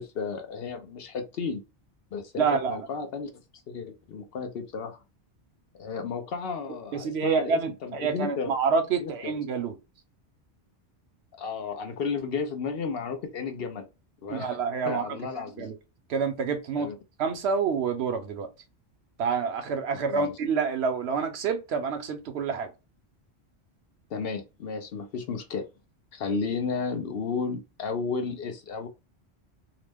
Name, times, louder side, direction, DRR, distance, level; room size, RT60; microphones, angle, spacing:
voice 1, 0.0-1.6 2.1-3.3 3.7-5.0 5.7-8.5 9.0-9.3 11.4-13.9 14.2-14.6 14.9-15.7 16.8-16.9 20.1-20.3 24.1-25.7 26.1-28.9, left 5 dB, 65° left, 0.8 m, -33 dB
voice 2, 2.4-2.9 6.9-9.8 14.3-15.2 15.6-15.8 16.1-16.9 17.2-18.5 19.2-22.7, right 5 dB, 70° right, 0.9 m, -27 dB
2.9 x 2.1 x 3.3 m
omnidirectional pair, 1.1 m